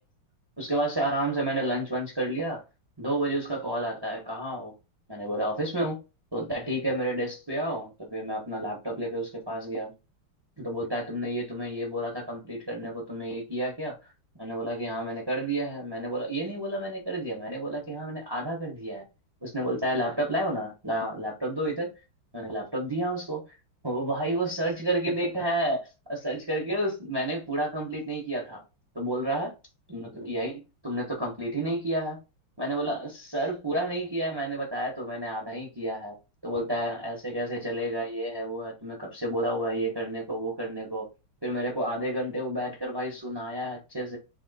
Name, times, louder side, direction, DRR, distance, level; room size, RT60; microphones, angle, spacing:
voice 1, 0.6-2.6 3.0-4.7 5.1-6.0 6.3-9.9 10.6-14.0 14.4-19.0 19.4-21.9 22.3-23.4 23.8-28.6 28.9-29.5 29.9-32.2 32.6-36.1 36.4-41.1 41.4-44.2, right 1 dB, 20° right, 0.7 m, -30 dB
3.5 x 2.9 x 4.1 m
omnidirectional pair, 2.4 m